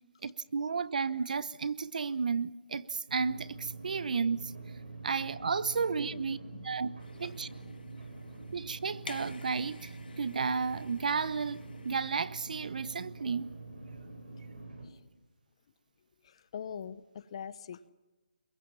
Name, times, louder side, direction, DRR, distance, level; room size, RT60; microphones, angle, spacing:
voice 1, 0.2-4.5 5.0-6.4 6.6-6.9 7.2-7.5 8.5-9.9 10.2-13.5, right 5 dB, 60° right, 1.0 m, -32 dB
sound 1, 3.1-14.9, right 3 dB, 90° right, 7.8 m, -46 dB
voice 2, 5.7-6.4 7.2-7.3 14.8-15.0 16.2-17.8, left 7 dB, 40° left, 0.9 m, -44 dB
sound 2, 7.0-12.1, left 3 dB, 80° left, 1.7 m, -51 dB
28.5 x 22.5 x 5.6 m
hypercardioid pair, 165°, 5 cm